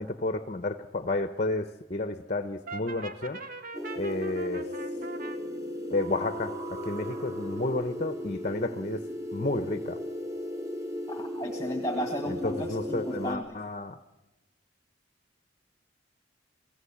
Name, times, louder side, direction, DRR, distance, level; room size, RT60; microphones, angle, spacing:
voice 1, 0.0-3.4 4.0-4.7 5.9-9.0 9.3-10.0 12.3-14.0, left 2 dB, 35° left, 10 dB, 0.9 m, -31 dB
Brass instrument, 2.7-5.4, right 3 dB, 45° right, 1.7 m, -41 dB
sound 1, 3.7-13.4, equal, 15° right, 2.5 m, -36 dB
voice 2, 11.1-13.6, equal, 15° left, 4 dB, 1.7 m, -34 dB
28.0 x 17.0 x 8.6 m, 1.0 s
head